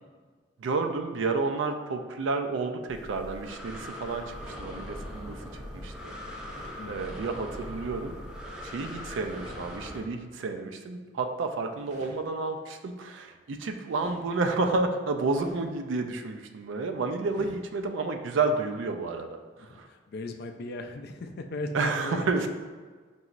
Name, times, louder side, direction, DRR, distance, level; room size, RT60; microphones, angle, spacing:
voice 1, 0.6-6.1 6.9-8.1 8.6-19.9 21.7-22.5, right 3 dB, 75° right, 6 dB, 0.4 m, -30 dB
Breathing, 2.9-10.0, left 1 dB, 5° right, 0.5 m, -40 dB
sound 1, 4.4-4.8 6.4-6.8 9.2-9.5 11.7-12.2 13.9-14.3 15.3-15.7 17.3-17.6, equal, 40° right, 0.8 m, -49 dB
voice 2, 6.8-7.1 17.4-17.5 19.6-22.5, left 2 dB, 55° left, 5 dB, 0.4 m, -37 dB
5.3 x 2.9 x 2.5 m, 1.4 s
head